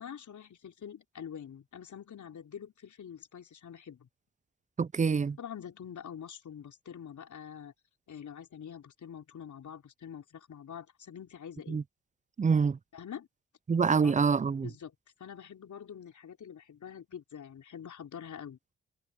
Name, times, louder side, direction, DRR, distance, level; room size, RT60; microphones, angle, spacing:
voice 1, 0.0-4.1 5.4-7.7 8.1-11.8 12.9-13.3 14.0-14.1 14.6-14.9 15.2-18.6, left 8 dB, 60° left, 4.2 m, -45 dB
voice 2, 4.8-5.4 11.7-11.8 12.4-12.8 13.7-14.7, right 5 dB, 25° right, 0.5 m, -26 dB
hypercardioid pair, 40°, 33 cm